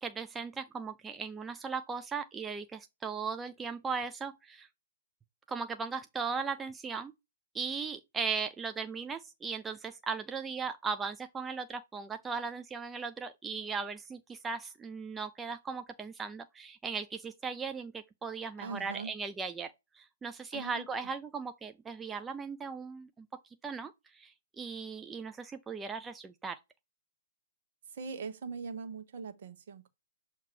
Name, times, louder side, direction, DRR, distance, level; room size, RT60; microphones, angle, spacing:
voice 1, 0.0-4.7 5.5-7.1 7.5-23.3 23.6-26.6, right 5 dB, 10° right, 0.4 m, -38 dB
voice 2, 18.6-19.1 20.5-21.1 27.8-29.9, right 5 dB, 55° right, 1.1 m, -41 dB
7.2 x 2.8 x 4.6 m
hypercardioid pair, 125°, 0 cm